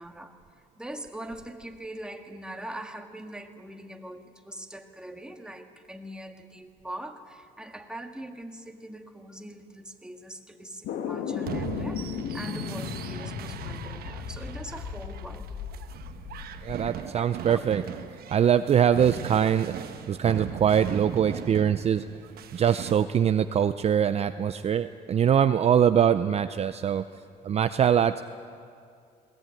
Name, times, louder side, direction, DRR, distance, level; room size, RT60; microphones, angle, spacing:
voice 1, 0.0-15.5 17.0-17.6, right 1 dB, 5° right, 4 dB, 1.8 m, -42 dB
sound 1, 10.8-16.9, left 7 dB, 75° left, 1.5 m, -35 dB
sound 2, 11.4-22.9, right 9 dB, 65° right, 1.3 m, -39 dB
voice 2, 16.6-17.8 18.3-19.7 20.1-22.0 22.5-27.0 27.4-28.2, right 8 dB, 40° right, 11 dB, 0.6 m, -23 dB
21.0 x 18.0 x 9.1 m, 2.3 s
cardioid pair, 110°, 17 cm